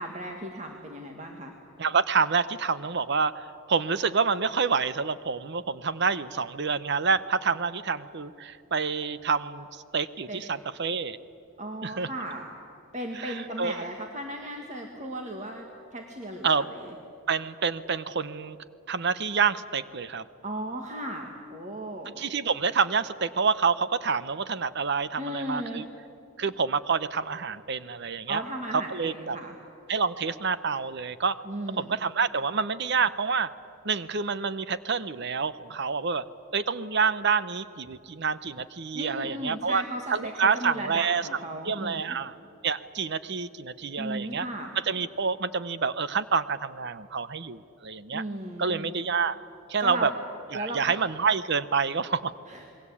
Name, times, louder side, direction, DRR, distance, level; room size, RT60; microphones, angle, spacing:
voice 1, 0.0-1.5 10.3-10.4 11.6-12.5 12.9-16.9 20.4-22.2 25.2-25.9 28.3-29.6 31.4-32.0 38.9-42.2 44.0-44.7 48.1-48.9 49.8-50.1 50.5-50.9 52.5-52.6, right 1 dB, 35° right, 2 dB, 1.8 m, -36 dB
voice 2, 1.8-11.2 11.8-12.1 13.1-13.8 16.4-16.6 17.3-18.6 18.9-20.2 22.2-25.8 26.4-28.4 28.7-29.4 29.9-31.4 31.8-33.5 33.8-36.2 36.5-39.8 40.1-41.4 41.6-42.3 42.6-44.5 44.8-48.2 48.6-49.4 49.7-50.1 50.5-52.3, right 5 dB, 55° right, 15 dB, 0.8 m, -27 dB
28.0 x 21.5 x 8.6 m, 2.7 s
head